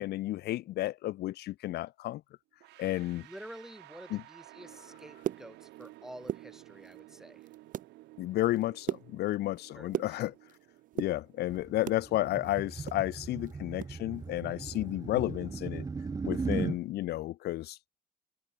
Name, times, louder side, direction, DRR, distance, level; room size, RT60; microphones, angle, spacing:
voice 1, 0.0-2.2 2.8-3.3 4.1-4.2 8.2-10.3 10.9-15.9 16.2-17.8, left 15 dB, 75° left, 1.3 m, -32 dB
sound 1, 2.6-13.5, right 18 dB, 85° right, 4.2 m, -55 dB
voice 2, 3.1-7.5 9.7-10.3, equal, 5° right, 4.5 m, -49 dB
sound 2, 5.0-5.9 6.2-7.0 7.4-7.9 8.3-10.6 10.9-12.1 12.4-14.0 14.2-14.3 14.7-14.9 15.3-15.5, right 10 dB, 50° right, 1.2 m, -38 dB
sound 3, 11.5-16.8, right 4 dB, 20° right, 0.9 m, -37 dB
cardioid pair, 110°, 17 cm